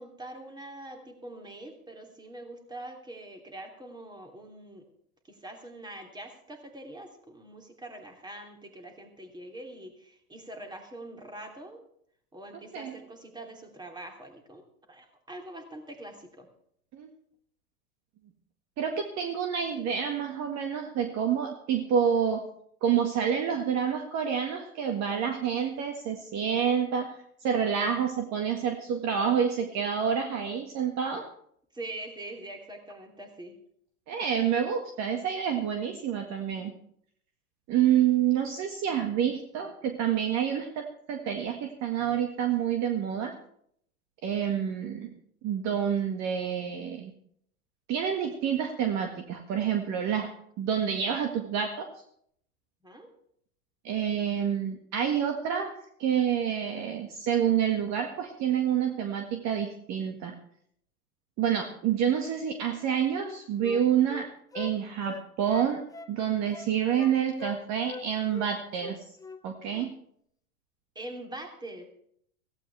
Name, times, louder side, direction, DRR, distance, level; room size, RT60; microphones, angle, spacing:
voice 1, 0.0-4.8 5.3-11.8 12.3-14.6 14.9-16.5 31.7-33.6 38.0-38.1 52.8-53.1 70.9-71.8, right 1 dB, 10° right, 3 dB, 3.0 m, -44 dB
voice 2, 18.8-22.4 22.8-27.1 27.4-31.3 34.1-36.7 37.7-43.4 44.2-45.1 45.4-47.1 47.9-50.3 50.6-51.9 53.8-60.3 61.4-64.3 64.5-69.0 69.4-69.9, right 8 dB, 35° right, 5 dB, 1.8 m, -28 dB
Wind instrument woodwind instrument, 62.8-64.7 65.0-66.2 66.5-67.1 67.4-68.1 68.3-68.5 68.8-69.4 69.7-69.9, left 4 dB, 10° left, 0.8 m, -42 dB
17.0 x 15.5 x 3.4 m, 0.66 s
hypercardioid pair, 100°, 45 cm